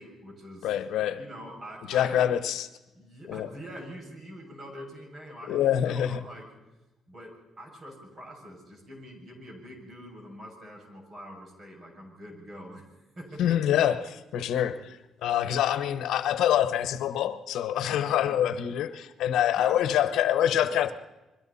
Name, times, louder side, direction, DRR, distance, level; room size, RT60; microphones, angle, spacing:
voice 1, 0.0-0.7 1.1-2.3 2.9-6.5 7.1-13.6 17.8-18.4 19.6-19.8, equal, 40° right, 6.8 m, -45 dB
voice 2, 0.6-1.2 1.9-2.7 3.3-3.5 5.5-6.3 13.4-20.9, left 10 dB, 80° left, 1.0 m, -26 dB
29.0 x 22.0 x 4.2 m
cardioid pair, 90°, 0 cm